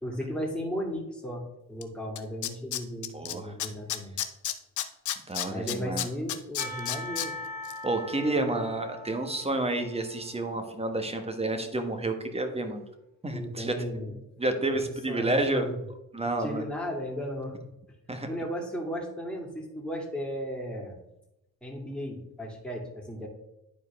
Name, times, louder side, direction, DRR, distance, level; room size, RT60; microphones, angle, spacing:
voice 1, 0.0-4.2 5.5-7.3 8.2-8.8 13.3-14.1 14.7-15.7 16.4-17.7 18.3-21.0 21.6-23.3, equal, 5° left, -1 dB, 2.5 m, -35 dB
Tools, 1.8-1.9 2.2-3.3 3.6-7.3 7.6-7.7, left 12 dB, 65° left, 0.7 m, -31 dB
voice 2, 3.1-3.5 5.3-6.1 7.8-12.8 13.2-13.7 14.1-15.7 16.1-16.6 18.1-18.3, right 2 dB, 20° right, 6 dB, 1.4 m, -30 dB
Percussion / Church bell, 6.6-11.6, left 1 dB, 55° right, 2.5 m, -42 dB
10.5 x 4.5 x 3.6 m, 0.89 s
supercardioid pair, 70°, 33 cm